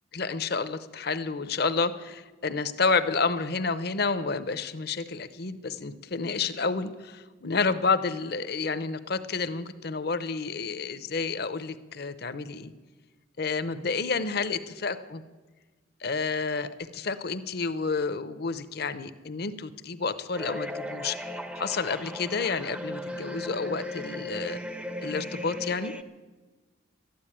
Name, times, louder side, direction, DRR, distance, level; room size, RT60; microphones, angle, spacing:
voice 1, 0.1-12.7 13.4-15.2 16.0-21.2 21.6-24.6 25.0-25.9, left 4 dB, 55° left, 13 dB, 0.7 m, -30 dB
sound 1, 20.3-26.0, left 1 dB, 5° right, 0.5 m, -36 dB
13.0 x 10.5 x 8.8 m, 1.3 s
head